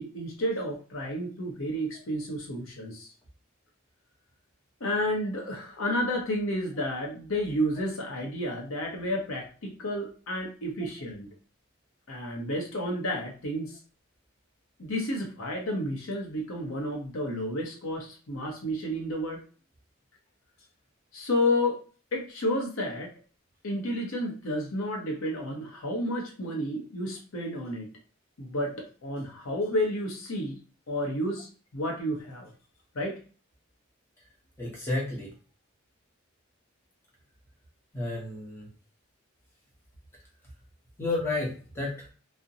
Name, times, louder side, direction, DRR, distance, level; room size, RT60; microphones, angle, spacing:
voice 1, 0.0-3.1 4.8-11.3 12.1-13.8 14.8-19.4 21.1-21.8 22.1-23.1 23.6-27.9 28.4-30.6 30.9-31.5 31.7-32.5 32.9-33.1, left 1 dB, 85° left, 0 dB, 0.7 m, -31 dB
voice 2, 34.6-35.3 37.9-38.7 41.0-42.1, left 2 dB, 10° left, -4 dB, 0.8 m, -31 dB
2.4 x 2.1 x 2.7 m, 0.38 s
head